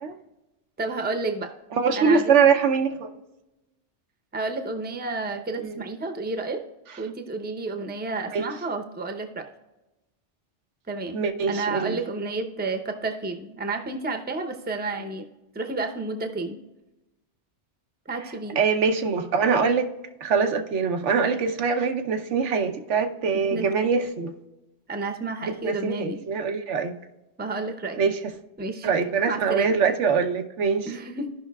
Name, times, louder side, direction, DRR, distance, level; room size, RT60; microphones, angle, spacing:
voice 1, 0.8-1.5 1.9-2.5 4.3-6.6 7.0-9.5 10.9-11.2 11.5-15.3 15.5-16.6 18.1-18.6 23.5-23.7 24.9-26.2 27.4-28.0 28.6-28.9 29.3-29.8 30.9-31.3, right 3 dB, 10° right, 5 dB, 0.6 m, -31 dB
voice 2, 1.7-3.1 5.6-5.8 8.3-8.4 11.1-12.0 18.6-19.9 20.2-24.3 25.4-26.9 28.0-28.2 28.8-30.9, right 5 dB, 90° right, 6 dB, 1.1 m, -23 dB
15.0 x 5.6 x 2.3 m, 1.0 s
omnidirectional pair, 1.2 m